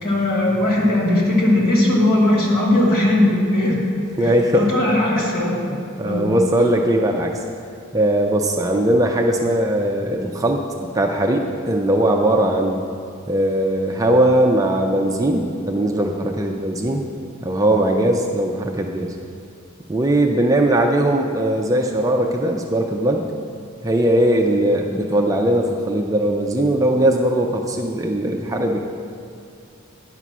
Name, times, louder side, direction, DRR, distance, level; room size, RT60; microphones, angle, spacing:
voice 1, 0.0-3.8 4.2-4.3 4.6-5.6 6.0-6.2, left 1 dB, 50° left, -3 dB, 2.1 m, -18 dB
voice 2, 4.2-4.7 5.7-7.4 7.9-10.6 10.9-12.8 13.3-17.0 17.4-19.1 19.9-23.2 23.8-28.8, right 1 dB, 15° right, 1 dB, 0.4 m, -19 dB
10.0 x 5.6 x 6.1 m, 2.4 s
head